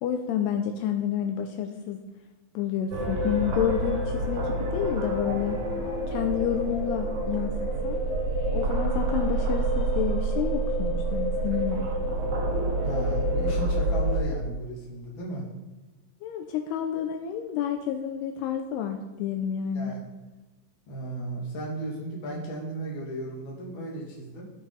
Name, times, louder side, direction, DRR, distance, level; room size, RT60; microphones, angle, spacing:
voice 1, 0.0-2.0 2.5-5.6 6.1-7.5 7.8-8.0 8.5-11.9 16.2-19.9, left 9 dB, 85° left, 5 dB, 2.4 m, -29 dB
sound 1, 2.9-14.2, right 2 dB, 65° right, 1.9 m, -27 dB
voice 2, 12.8-15.5 19.7-20.0 20.9-24.5, right 1 dB, 40° left, -3 dB, 2.1 m, -35 dB
15.5 x 5.7 x 3.9 m, 1.2 s
omnidirectional pair, 5.3 m